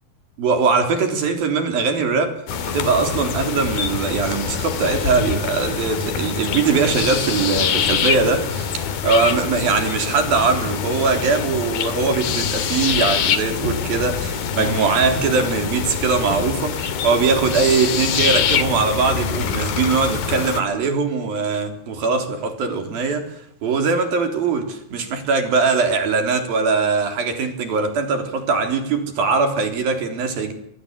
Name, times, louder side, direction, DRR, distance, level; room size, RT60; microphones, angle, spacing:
voice 1, 0.4-2.4 2.6-30.5, right 4 dB, 70° right, 5.5 m, -21 dB
sound 1, 2.5-20.6, left 7 dB, 75° left, 3.9 m, -24 dB
24.5 x 23.5 x 8.2 m
omnidirectional pair, 4.3 m